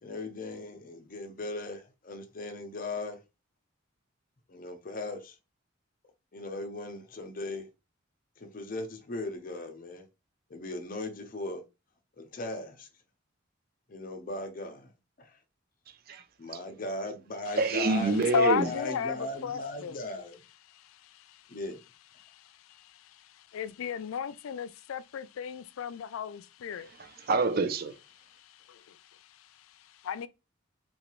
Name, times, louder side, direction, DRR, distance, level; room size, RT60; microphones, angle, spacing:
voice 1, 0.0-3.2 4.5-5.4 6.3-7.7 8.4-10.0 10.5-11.6 12.2-12.9 13.9-14.9 15.2-15.4 16.4-18.1 18.6-20.4 21.5-21.8, left 2 dB, 40° left, 0.6 m, -38 dB
voice 2, 15.9-16.3 16.5-16.6 17.6-18.7 26.8-28.0, right 3 dB, 45° right, 0.5 m, -27 dB
voice 3, 18.3-20.0 20.7-21.6 22.2-27.3 28.3-30.3, left 7 dB, 85° left, 0.3 m, -35 dB
3.9 x 2.3 x 3.0 m
head